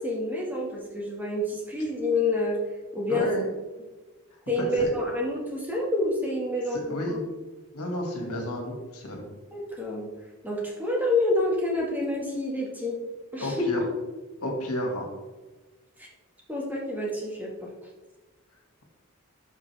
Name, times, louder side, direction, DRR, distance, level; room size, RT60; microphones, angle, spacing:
voice 1, 0.0-2.6 2.9-3.3 4.5-7.2 9.5-10.1 10.4-13.0 13.3-13.7 16.0-16.1 16.5-17.7, left 2 dB, 10° right, -3 dB, 1.9 m, -28 dB
voice 2, 3.1-3.5 4.8-4.9 6.7-7.2 7.7-9.3 13.4-13.8 14.4-15.1, left 1 dB, 85° left, 0 dB, 2.2 m, -31 dB
12.5 x 5.5 x 3.5 m, 1.2 s
head